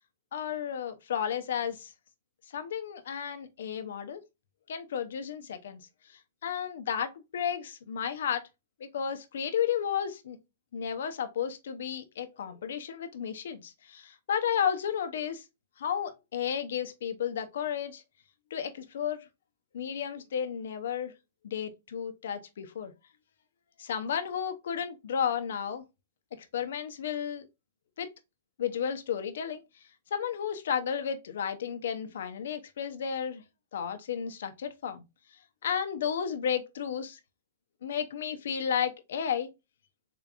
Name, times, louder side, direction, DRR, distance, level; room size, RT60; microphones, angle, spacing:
voice 1, 0.3-1.9 2.5-4.2 4.7-5.8 6.1-8.5 8.8-10.4 10.7-15.4 15.8-18.0 18.5-19.2 19.7-21.1 21.4-22.9 23.8-25.8 26.4-27.5 28.0-28.1 28.6-29.6 30.1-33.4 33.7-35.0 35.6-37.2 37.8-39.5, left 8 dB, 75° left, 0.7 m, -33 dB
3.8 x 3.4 x 2.4 m
hypercardioid pair, 135°, 0 cm